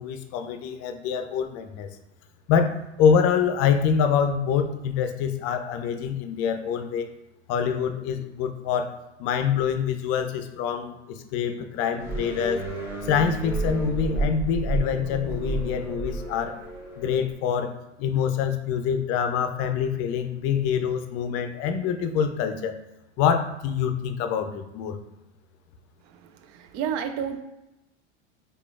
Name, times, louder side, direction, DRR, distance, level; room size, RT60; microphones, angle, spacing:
voice 1, 0.0-1.9 2.5-7.1 7.5-8.9 9.2-12.6 13.0-16.6 17.0-17.7 18.0-22.7 23.2-25.0, left 7 dB, 45° left, 7 dB, 0.5 m, -25 dB
sound 1, 12.0-17.3, right 2 dB, 5° right, 1.2 m, -31 dB
voice 2, 26.0-27.4, right 8 dB, 50° right, 8 dB, 0.5 m, -31 dB
4.8 x 2.4 x 2.4 m, 0.92 s
hypercardioid pair, 90°, 36 cm